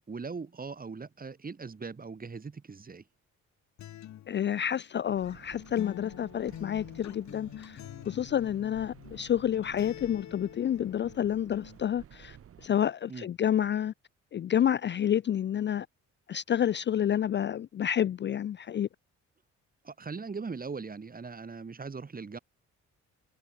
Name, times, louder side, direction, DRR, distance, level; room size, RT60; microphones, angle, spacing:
voice 1, 0.0-3.0 13.1-13.3 19.8-22.4, right 4 dB, 30° right, 2.8 m, -40 dB
Acoustic guitar, 3.8-11.8, left 12 dB, 65° left, 1.4 m, -46 dB
voice 2, 4.3-12.4 12.6-13.9 14.3-15.9 16.3-18.9, left 10 dB, 40° left, 0.4 m, -29 dB
sound 1, 5.1-12.7, right 9 dB, 50° right, 1.1 m, -53 dB
cardioid pair, 90°, 30 cm